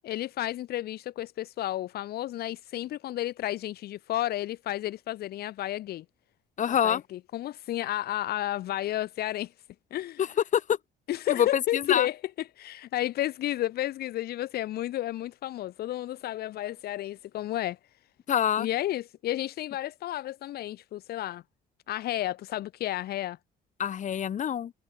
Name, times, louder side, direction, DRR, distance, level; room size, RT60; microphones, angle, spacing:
voice 1, 0.0-6.0 6.7-9.5 9.9-10.2 11.1-12.2 12.6-17.8 18.6-21.4 21.9-23.4, left 14 dB, 65° left, 1.6 m, -32 dB
voice 2, 6.6-7.0 10.2-10.8 11.3-12.1 18.3-18.7 23.8-24.7, left 9 dB, 45° left, 2.1 m, -26 dB
cardioid pair, 110°, 17 cm